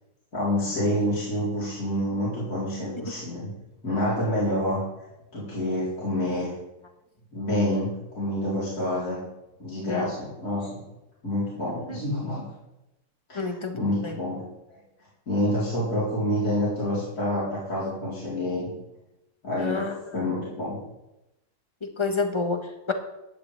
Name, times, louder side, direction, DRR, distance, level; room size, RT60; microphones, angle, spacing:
voice 1, 0.3-3.5 3.8-4.8 5.3-6.6 7.3-9.2 9.6-10.8 11.2-12.5 13.3-14.4 14.7-14.8 15.3-18.7 19.4-19.9 20.1-20.8, left 1 dB, 55° left, -9 dB, 4.7 m, -27 dB
voice 2, 13.3-14.2 19.6-20.0 21.8-22.9, left 4 dB, 20° left, 5 dB, 1.2 m, -29 dB
16.0 x 11.0 x 3.5 m, 0.92 s
omnidirectional pair, 1.7 m